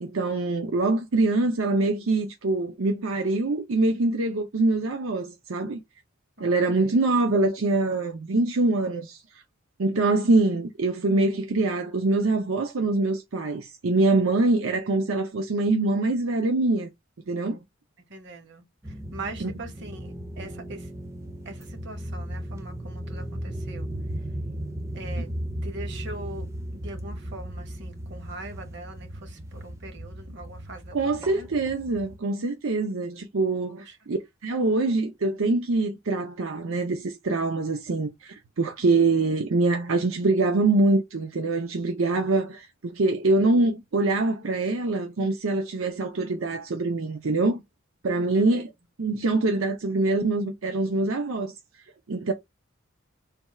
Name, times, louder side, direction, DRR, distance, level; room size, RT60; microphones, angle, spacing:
voice 1, 0.0-5.8 6.4-9.2 9.8-16.9 17.3-17.6 19.4-19.5 30.9-47.6 48.0-48.7 49.0-51.5 52.1-52.3, right 2 dB, 85° right, 0.7 m, -24 dB
voice 2, 6.4-7.0 18.1-18.7 19.1-20.9 21.4-23.9 24.9-25.3 25.6-26.5 26.7-31.5 33.7-33.8 48.2-48.6, right 2 dB, 60° right, 1.1 m, -42 dB
sound 1, 18.8-32.2, right 1 dB, 15° right, 0.4 m, -36 dB
3.4 x 2.3 x 4.2 m
head